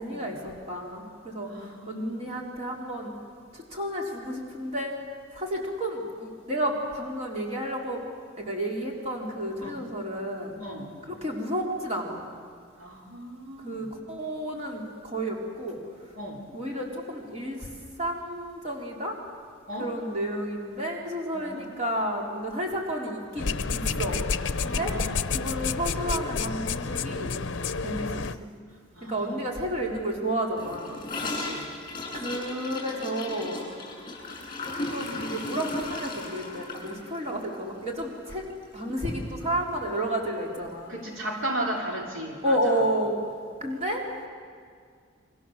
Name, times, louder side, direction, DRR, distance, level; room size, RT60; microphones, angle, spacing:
voice 1, 0.0-3.1 3.5-4.9 5.3-8.0 8.4-10.6 11.1-12.3 13.6-15.8 16.5-17.7 18.0-19.2 19.8-24.2 24.6-24.9 25.3-27.3 27.8-28.5 29.0-31.0 32.1-33.7 34.6-38.5 38.7-41.0 42.4-43.3 43.6-44.0, right 1 dB, 30° right, -1 dB, 4.0 m, -31 dB
voice 2, 1.5-2.2 9.6-9.8 10.6-10.9 12.8-13.9 16.1-16.4 19.7-19.9 21.3-21.6 24.6-25.2 27.8-28.1 28.9-29.4 31.2-31.7 40.9-42.6, right 1 dB, 65° right, 0 dB, 3.0 m, -36 dB
sound 1, 23.4-28.3, left 4 dB, 55° left, 0.8 m, -29 dB
Gurgling / Toilet flush, 30.6-38.8 39.1-39.2 39.5-40.0 40.2-40.3 40.6-40.7 41.7-41.8, left 2 dB, 20° left, 7.8 m, -36 dB
29.0 x 24.5 x 7.4 m, 2.1 s
head